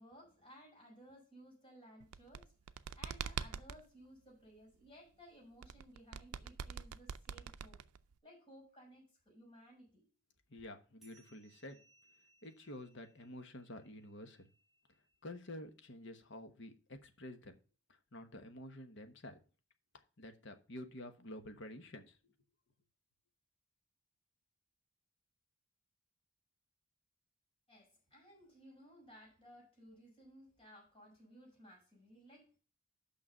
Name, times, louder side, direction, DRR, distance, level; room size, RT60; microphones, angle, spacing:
voice 1, 0.0-2.5 2.9-7.8 8.2-10.1 27.7-32.6, equal, 25° left, 5.4 m, -59 dB
sound 1, 2.0-3.8 5.6-8.2, right 7 dB, 85° right, 0.4 m, -43 dB
voice 2, 10.5-11.8 12.4-14.5 15.2-17.5 17.9-19.4 20.2-22.2, left 1 dB, 55° left, 1.1 m, -50 dB
sound 2, 11.0-15.9, right 3 dB, ahead, 2.4 m, -71 dB
6.2 x 5.9 x 6.7 m
head